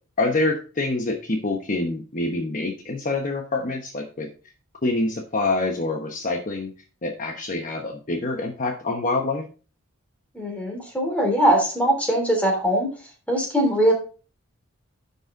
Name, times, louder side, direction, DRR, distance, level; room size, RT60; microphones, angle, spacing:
voice 1, 0.2-4.3 4.8-6.7 7.0-9.4, left 2 dB, 40° left, 2 dB, 1.0 m, -26 dB
voice 2, 10.3-12.9 13.3-13.9, right 1 dB, 5° left, 1 dB, 3.0 m, -21 dB
10.5 x 5.5 x 3.7 m, 0.36 s
head